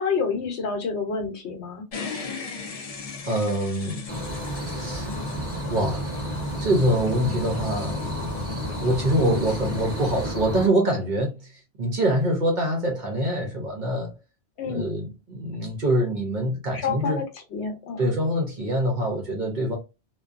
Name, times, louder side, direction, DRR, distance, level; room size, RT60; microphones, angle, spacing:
voice 1, 0.0-1.8 9.1-9.4 14.6-14.9 16.7-17.2 17.5-18.1, left 5 dB, 70° left, 1.0 m, -28 dB
sound 1, 1.9-10.3, left 4 dB, 50° left, 0.4 m, -39 dB
voice 2, 3.3-4.0 4.7-5.1 5.7-6.1 6.6-8.0 8.8-11.5 11.8-14.1 14.7-17.2 18.0-19.8, right 1 dB, 50° right, 0.8 m, -24 dB
sound 2, 4.1-10.7, equal, 15° right, 0.8 m, -31 dB
2.6 x 2.2 x 2.4 m
omnidirectional pair, 1.2 m